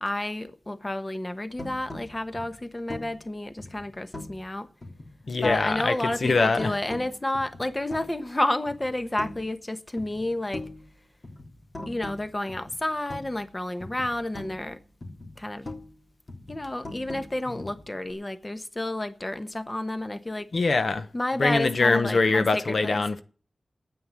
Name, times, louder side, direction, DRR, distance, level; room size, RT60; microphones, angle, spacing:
voice 1, 0.0-4.7 5.4-10.7 11.9-14.8 15.4-15.8 16.5-20.5 21.1-23.0, left 1 dB, 20° left, 1.2 m, -30 dB
sound 1, 1.6-4.5 4.8-5.8 6.1-8.3 8.7-9.7 10.0-13.5 13.8-16.0 16.3-18.1, left 2 dB, 45° left, 3.3 m, -42 dB
voice 2, 5.3-6.7 20.5-21.1 21.4-23.2, left 3 dB, 60° left, 1.0 m, -23 dB
9.5 x 9.1 x 9.9 m
wide cardioid pair, 105°, 0 cm